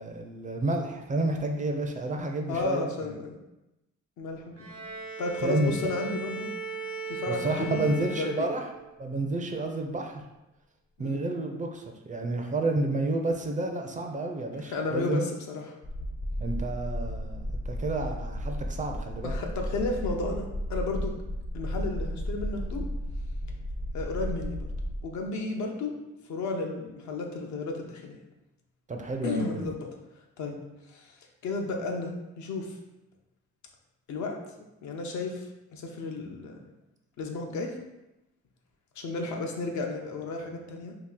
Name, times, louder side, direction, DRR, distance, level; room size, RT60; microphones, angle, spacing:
voice 1, 0.0-2.8 5.4-5.7 7.3-8.6 9.0-10.2 11.0-15.2 16.4-19.4 28.9-29.6, right 2 dB, 25° right, 3 dB, 0.4 m, -30 dB
voice 2, 2.5-3.4 4.2-4.7 5.2-6.5 7.1-7.8 8.1-8.5 11.0-11.2 14.6-15.8 19.2-21.1 21.5-22.9 23.9-24.7 25.0-26.0 26.3-28.2 29.2-29.9 30.4-30.6 30.9-31.1 31.4-32.7 34.1-34.4 34.8-36.6 37.2-37.8 39.0-40.9, left 3 dB, 70° left, 2 dB, 0.6 m, -33 dB
Bowed string instrument, 4.6-9.0, right 4 dB, 85° right, 0.9 m, -37 dB
sound 1, 15.8-25.0, equal, 30° left, 0.5 m, -34 dB
2.8 x 2.4 x 3.6 m, 0.96 s
cardioid pair, 90°, 30 cm